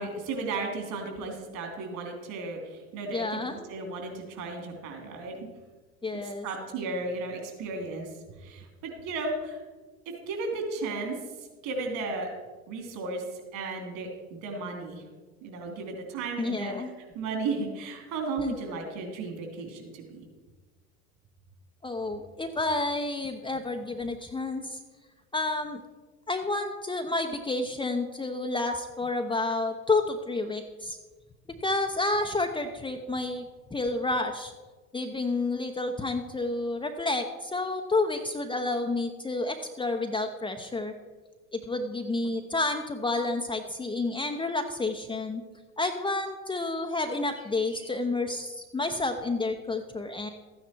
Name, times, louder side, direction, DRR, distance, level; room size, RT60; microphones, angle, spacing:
voice 1, 0.0-5.4 6.4-8.1 8.4-9.6 10.1-11.2 11.6-12.3 12.7-13.2 13.5-15.0 15.4-16.9 17.1-20.3, right 3 dB, 50° right, 3 dB, 3.4 m, -34 dB
voice 2, 3.1-3.7 6.0-6.5 16.4-16.9 18.4-18.5 21.8-24.8 25.3-25.8 26.3-31.0 31.6-34.5 34.9-40.9 41.5-45.4 45.8-50.3, left 2 dB, 10° left, 4 dB, 0.9 m, -30 dB
13.5 x 9.4 x 4.6 m, 1.3 s
figure-of-eight pair, 75°, 41 cm